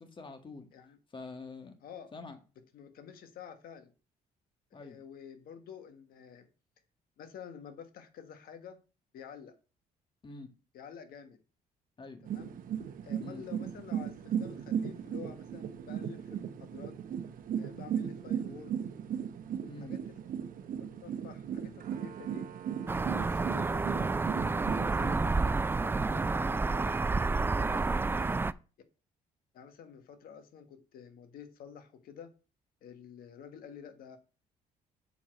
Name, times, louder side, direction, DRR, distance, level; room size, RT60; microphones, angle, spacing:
voice 1, 0.0-0.7 1.1-1.8 2.1-2.4 4.7-5.0 10.2-10.5 12.0-12.3 13.2-13.4 19.6-19.9 25.0-25.2, left 3 dB, 30° left, 1.8 m, -45 dB
voice 2, 1.8-2.1 2.7-3.9 4.7-6.5 7.2-8.8 9.1-9.6 10.7-11.4 12.2-12.5 13.0-17.0 17.6-18.8 19.8-20.2 20.8-22.5 22.9-24.1 24.6-27.0 27.4-28.4 29.5-32.3 32.8-34.2, left 7 dB, 75° left, 1.5 m, -50 dB
sound 1, 12.3-25.2, right 8 dB, 65° right, 0.9 m, -37 dB
sound 2, 22.9-28.5, right 3 dB, 15° right, 0.3 m, -29 dB
7.0 x 4.7 x 6.3 m
cardioid pair, 95°, 15 cm